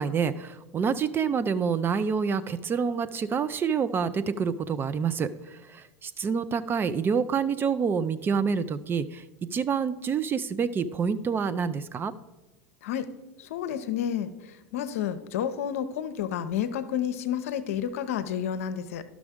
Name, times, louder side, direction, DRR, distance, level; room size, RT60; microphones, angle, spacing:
voice 1, 0.0-5.3 5.7-9.2 9.5-12.1, right 6 dB, 25° right, 13 dB, 0.4 m, -27 dB
voice 2, 12.8-13.1 13.4-14.3 14.7-19.0, left 9 dB, 75° left, 10 dB, 0.6 m, -30 dB
11.5 x 6.1 x 3.6 m, 1.1 s
hypercardioid pair, 90°, 8 cm